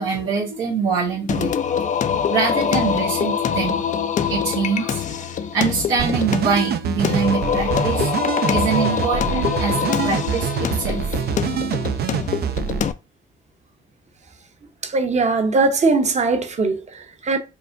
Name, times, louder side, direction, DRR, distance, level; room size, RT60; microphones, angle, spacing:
voice 1, 0.0-1.5 2.3-3.8 4.3-5.0 5.5-8.1 8.5-11.2, right 5 dB, 90° right, 1.3 m, -24 dB
Singing, 1.3-12.9, left 7 dB, 40° left, 0.4 m, -24 dB
sound 1, 6.0-12.8, right 8 dB, 55° right, 0.4 m, -25 dB
voice 2, 14.8-17.4, right 3 dB, 35° right, 0.8 m, -20 dB
4.6 x 2.1 x 2.5 m
cardioid pair, 90°, 20 cm